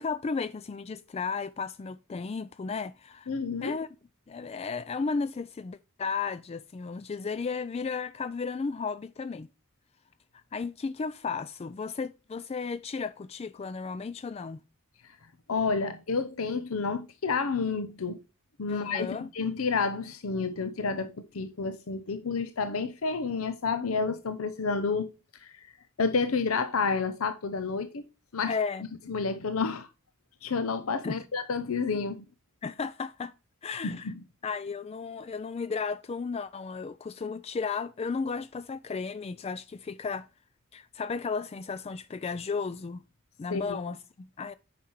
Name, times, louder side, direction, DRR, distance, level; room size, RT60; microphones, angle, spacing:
voice 1, 0.0-3.3 3.6-3.9 4.3-9.5 10.5-14.6 18.7-19.3 28.5-28.9 31.0-31.2 32.6-33.3 33.6-34.1 34.4-40.3 40.7-43.0 43.4-44.5, left 5 dB, 30° left, 0.3 m, -34 dB
voice 2, 3.3-3.8 15.0-15.2 15.5-18.2 18.6-25.1 25.4-25.7 26.0-28.1 28.3-28.6 29.1-29.9 30.4-32.2 33.8-34.1 43.5-43.8, left 4 dB, 75° left, 0.7 m, -30 dB
9.3 x 5.8 x 3.1 m
head